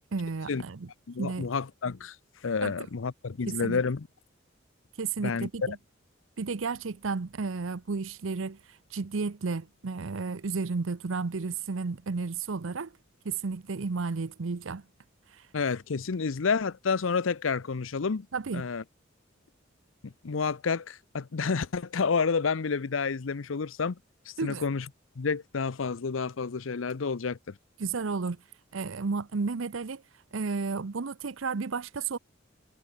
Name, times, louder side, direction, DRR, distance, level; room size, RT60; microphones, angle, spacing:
voice 1, 0.0-0.9 1.2-1.5 2.6-2.7 3.5-3.8 5.0-5.8 6.4-8.6 8.9-12.9 13.2-14.8 18.3-18.6 24.4-24.6 27.8-28.4 28.7-30.0 30.3-32.2, right 4 dB, 85° right, 0.7 m, -32 dB
voice 2, 1.1-2.2 2.4-4.1 5.2-5.5 15.5-18.3 18.5-18.8 20.0-24.0 24.3-24.9 25.2-27.4, left 5 dB, 85° left, 0.7 m, -29 dB
head